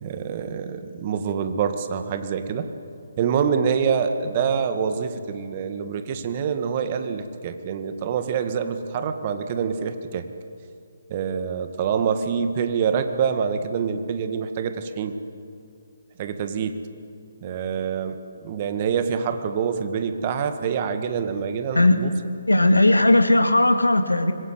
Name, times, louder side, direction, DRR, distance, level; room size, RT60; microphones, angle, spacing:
voice 1, 0.0-2.7 3.2-10.2 11.1-15.2 16.2-16.7 17.4-18.2 18.4-22.1, right 7 dB, 35° right, 8 dB, 1.8 m, -26 dB
voice 2, 22.5-24.3, left 1 dB, 85° left, 8 dB, 2.1 m, -17 dB
25.0 x 21.5 x 8.3 m, 2.4 s
figure-of-eight pair, 140°, 0 cm